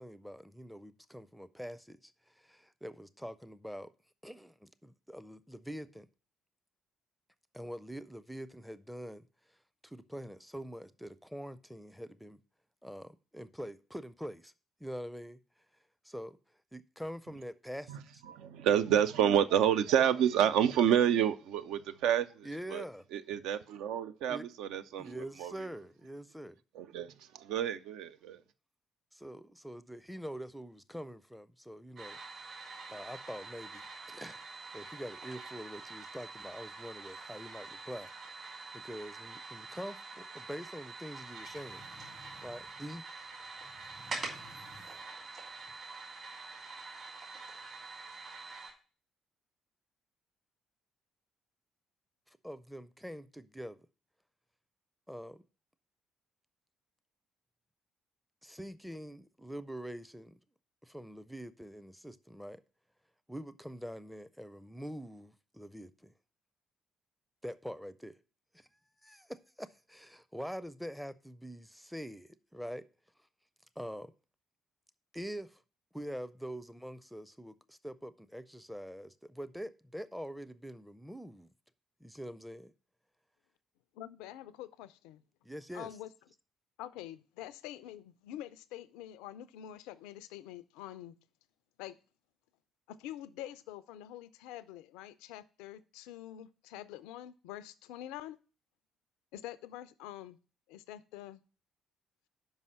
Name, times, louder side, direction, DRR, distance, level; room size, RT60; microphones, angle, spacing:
voice 1, 0.0-3.9 4.2-6.1 7.5-9.3 9.8-12.4 12.8-14.5 14.8-15.4 16.0-16.4 16.7-18.2 22.4-23.0 24.3-24.4 25.0-26.6 29.1-32.2 32.9-34.4 34.7-41.9 42.4-43.0 52.3-53.8 55.1-55.4 58.4-60.4 60.8-62.6 63.3-66.1 67.4-68.1 68.5-68.7 69.0-72.8 73.8-74.1 75.1-75.6 75.9-81.5 82.0-82.7 85.4-85.9, equal, ahead, 0.5 m, -44 dB
voice 2, 17.9-22.8 23.1-25.5 26.7-28.4, right 9 dB, 65° right, 0.4 m, -29 dB
sound 1, 32.0-48.7, right 3 dB, 45° right, 2.9 m, -46 dB
sound 2, 41.0-43.0 43.2-45.2 45.6-45.7, left 1 dB, 80° right, 5.0 m, -57 dB
voice 3, 83.9-85.2 85.7-86.1 86.8-91.1 91.8-92.0 92.9-98.4 99.3-100.4 100.7-101.4, left 13 dB, 70° left, 0.3 m, -46 dB
5.5 x 5.3 x 6.2 m
figure-of-eight pair, 45°, 0 cm